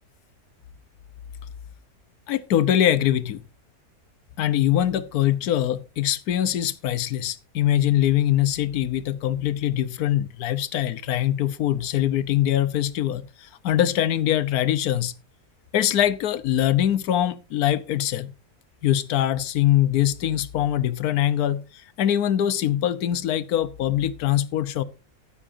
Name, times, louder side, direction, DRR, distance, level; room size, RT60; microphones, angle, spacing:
voice 1, 2.3-3.4 4.4-15.1 15.7-18.3 18.8-24.8, left 12 dB, 75° left, 1.3 m, -23 dB
14.0 x 12.5 x 2.7 m
omnidirectional pair, 1.7 m